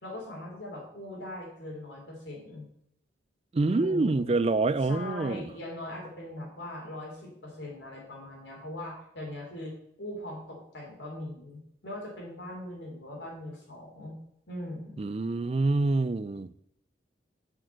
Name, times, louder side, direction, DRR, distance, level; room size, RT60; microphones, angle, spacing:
voice 1, 0.0-2.6 3.7-4.3 4.9-14.2 14.5-15.0, left 1 dB, 75° left, -2 dB, 3.7 m, -40 dB
voice 2, 3.5-5.5 15.0-16.5, right 3 dB, 35° right, 15 dB, 0.4 m, -26 dB
6.5 x 6.4 x 7.6 m, 0.73 s
head